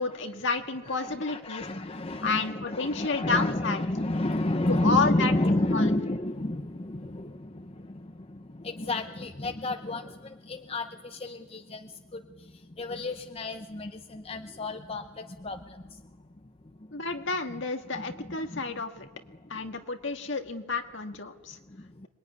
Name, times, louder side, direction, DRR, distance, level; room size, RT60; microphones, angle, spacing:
voice 1, 0.0-1.7 2.2-3.8 4.7-5.3 5.7-5.9 16.9-19.1 19.5-21.6, left 4 dB, 60° left, 5 dB, 1.9 m, -30 dB
voice 2, 0.9-16.1 16.4-17.1 17.9-18.8 19.3-19.8 21.7-22.1, left 1 dB, 30° left, 7 dB, 0.8 m, -31 dB
25.5 x 22.0 x 9.7 m, 1.2 s
head